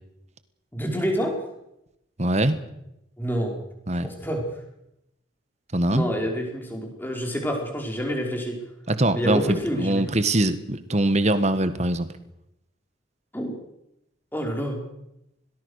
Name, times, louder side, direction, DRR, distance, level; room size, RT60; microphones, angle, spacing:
voice 1, 0.7-1.4 3.2-3.6 4.0-4.4 5.9-8.6 9.1-10.1 13.3-13.5 14.3-14.8, equal, 10° left, 1 dB, 5.0 m, -28 dB
voice 2, 2.2-2.6 3.9-4.1 5.7-6.1 8.9-12.1, right 1 dB, 35° right, 12 dB, 1.5 m, -22 dB
22.0 x 19.0 x 6.6 m, 0.84 s
head